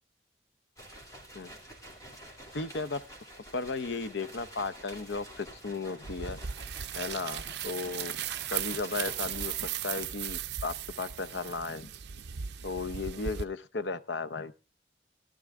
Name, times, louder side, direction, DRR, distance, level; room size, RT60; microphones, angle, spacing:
sound 1, 0.8-10.1, right 1 dB, 20° left, 2.8 m, -49 dB
voice 1, 2.5-3.0 3.5-6.4 6.9-8.2 8.5-11.9 12.6-14.5, left 3 dB, 80° left, 14 dB, 0.7 m, -35 dB
sound 2, 6.0-13.4, right 9 dB, 75° right, 0.5 m, -37 dB
16.0 x 12.0 x 3.6 m, 0.31 s
head